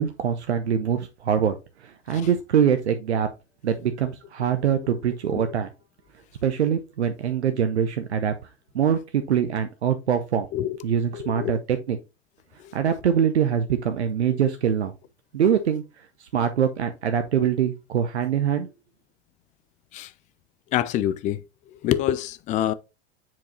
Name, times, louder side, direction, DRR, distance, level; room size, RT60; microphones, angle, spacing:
voice 1, 0.0-1.6 2.1-3.3 3.6-5.7 6.4-8.3 8.7-10.5 10.8-12.0 12.7-14.9 15.3-15.8 16.3-18.7, right 8 dB, 75° right, 0.7 m, -23 dB
voice 2, 4.6-5.0 5.3-5.5 10.5-10.8 11.1-11.6 12.6-12.7 14.3-14.5 19.9-20.1 20.7-21.4 21.8-22.7, left 12 dB, 25° left, 0.3 m, -27 dB
7.4 x 4.6 x 2.9 m
figure-of-eight pair, 80°, 34 cm